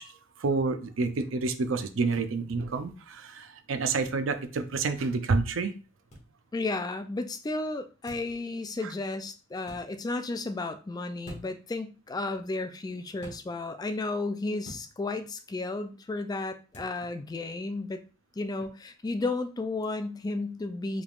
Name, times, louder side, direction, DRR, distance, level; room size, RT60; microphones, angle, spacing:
voice 1, 0.0-5.7 8.8-8.9, right 4 dB, 70° right, 9 dB, 0.5 m, -29 dB
sound 1, 2.1-2.3 4.0-4.2 6.1-6.3 8.0-8.4 9.6-9.8 11.2-11.6 13.2-13.4 14.6-14.9 16.7-16.9, equal, 35° left, 1.7 m, -45 dB
voice 2, 6.5-18.0 18.4-21.0, left 2 dB, 20° left, 9 dB, 0.3 m, -33 dB
5.0 x 3.4 x 2.4 m, 0.34 s
head